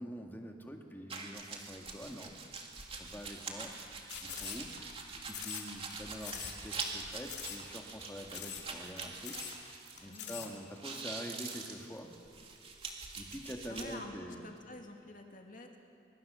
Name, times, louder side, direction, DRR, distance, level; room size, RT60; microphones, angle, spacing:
voice 1, 0.0-2.4 2.9-3.7 4.2-4.9 5.3-12.1 13.2-14.5, equal, 10° left, 2 dB, 2.0 m, -46 dB
sound 1, 1.1-10.4 10.6-13.9, right 4 dB, 30° right, 2.6 m, -44 dB
sound 2, 4.1-4.9 5.3-5.9 6.2-6.6 6.9-7.0 7.3-7.6 7.9-8.0 8.3-8.7 9.0-9.1 9.2-9.6 10.0-10.5, left 9 dB, 65° left, 3.1 m, -43 dB
voice 2, 10.0-10.5 13.7-15.8, left 2 dB, 45° left, 2 dB, 2.6 m, -48 dB
24.5 x 24.0 x 7.0 m, 2.5 s
head